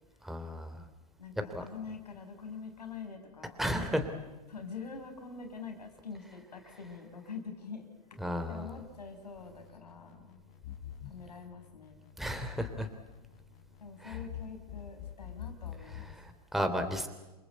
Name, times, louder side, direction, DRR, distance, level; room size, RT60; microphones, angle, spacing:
voice 1, 0.2-0.8 1.5-1.6 3.6-4.1 8.2-8.7 12.2-12.9 14.0-14.2 16.1-17.1, equal, ahead, 7 dB, 3.2 m, -33 dB
voice 2, 1.2-3.6 4.5-8.2 8.5-10.4 11.1-12.1 13.8-16.1, left 5 dB, 90° left, 5 dB, 5.8 m, -45 dB
sound 1, 9.4-16.2, left 10 dB, 55° left, 5.2 m, -47 dB
28.5 x 25.0 x 8.4 m, 1.1 s
hypercardioid pair, 110°, 20 cm